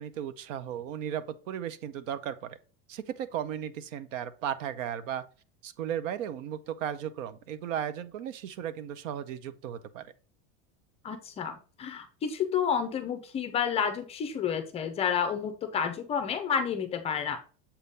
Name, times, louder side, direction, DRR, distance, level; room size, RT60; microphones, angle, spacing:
voice 1, 0.0-2.6 2.9-5.2 5.6-10.1, right 9 dB, 85° right, 0.8 m, -35 dB
voice 2, 11.0-17.4, left 7 dB, 15° left, 0.4 m, -30 dB
7.2 x 3.7 x 4.1 m
supercardioid pair, 160°, 37 cm